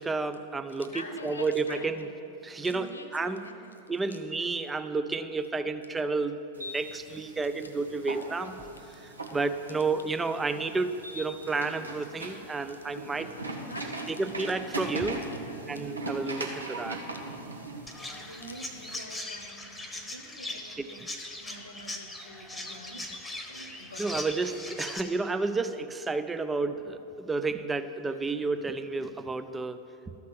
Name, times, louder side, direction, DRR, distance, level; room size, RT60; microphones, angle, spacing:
voice 1, 0.0-2.1 2.4-3.4 3.9-8.6 9.0-13.3 14.1-15.2 15.7-17.0 20.8-21.1 24.0-29.8, right 3 dB, 10° right, 10 dB, 0.5 m, -31 dB
voice 2, 0.8-2.2 2.6-3.7 4.1-4.2 9.2-9.3 13.2-15.8 17.1-17.2 17.9-21.0 21.4-23.0 23.4-24.1 26.6-26.9, left 1 dB, 75° left, 6 dB, 1.1 m, -46 dB
sound 1, 6.5-19.0, right 2 dB, 80° right, 1.1 m, -40 dB
Chirp tweet, 17.9-25.0, left 2 dB, 5° left, 1.1 m, -40 dB
13.0 x 5.9 x 7.5 m, 2.8 s
figure-of-eight pair, 90°, 0 cm